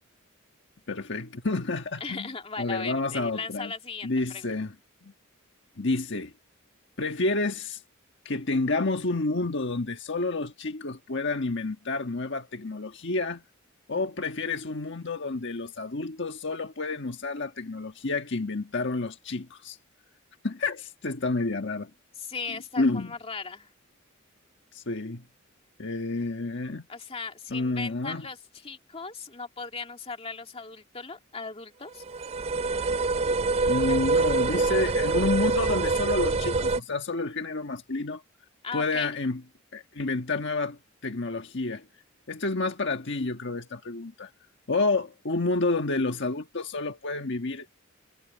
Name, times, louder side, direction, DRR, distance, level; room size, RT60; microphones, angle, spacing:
voice 1, 0.9-2.3 2.6-3.7 4.0-4.7 5.0-5.1 5.8-6.3 7.0-7.8 8.2-13.4 13.9-19.8 20.4-21.9 22.8-23.1 24.7-25.2 25.8-26.8 27.5-28.3 33.6-38.2 38.7-39.4 39.7-41.9 42.3-44.3 44.7-47.7, left 3 dB, 60° left, 1.4 m, -29 dB
voice 2, 2.0-4.5 22.2-23.7 26.9-28.4 28.6-32.0 33.8-34.3 34.6-35.2 38.6-39.2, left 4 dB, 30° left, 2.3 m, -38 dB
sound 1, 32.0-36.8, right 3 dB, 30° right, 0.4 m, -25 dB
head